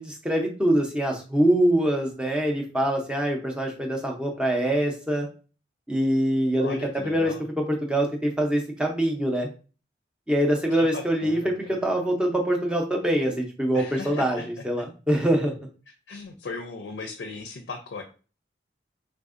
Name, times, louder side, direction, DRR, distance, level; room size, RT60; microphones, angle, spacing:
voice 1, 0.0-5.3 5.9-6.8 7.0-9.5 10.3-15.5, right 1 dB, 5° right, 0 dB, 0.5 m, -24 dB
voice 2, 6.6-7.4 10.7-11.7 13.7-14.5 16.1-18.0, left 4 dB, 75° left, 4 dB, 0.4 m, -37 dB
3.4 x 2.6 x 2.5 m, 0.36 s
head